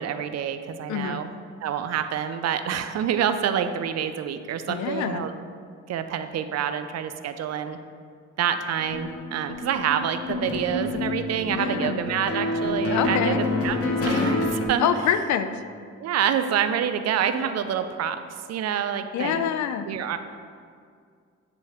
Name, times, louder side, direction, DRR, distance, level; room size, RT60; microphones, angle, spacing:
voice 1, 0.0-1.3 1.6-5.3 5.9-7.8 8.4-13.4 13.6-14.9 16.0-18.2 18.5-19.4 19.9-20.2, right 8 dB, 60° right, 9 dB, 0.4 m, -27 dB
voice 2, 0.9-1.2 4.7-5.3 11.5-12.0 12.9-13.4 14.8-15.5 19.1-19.9, left 9 dB, 70° left, 10 dB, 0.5 m, -26 dB
sound 1, 8.8-14.7, left 2 dB, 50° left, 0.9 m, -28 dB
9.2 x 3.5 x 3.4 m, 2.2 s
cardioid pair, 95°, 30 cm